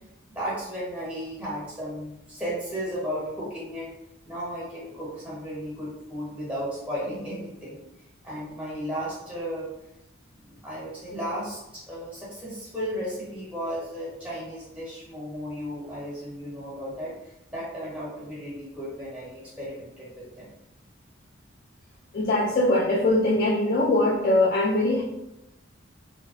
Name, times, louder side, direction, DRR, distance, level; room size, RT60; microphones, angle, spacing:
voice 1, 0.3-3.9 4.3-7.8 8.2-9.7 10.5-20.1 20.4-20.5, equal, 5° right, -8 dB, 0.8 m, -34 dB
voice 2, 22.1-25.0, left 2 dB, 50° left, -2 dB, 0.3 m, -22 dB
2.6 x 2.1 x 2.5 m, 0.88 s
head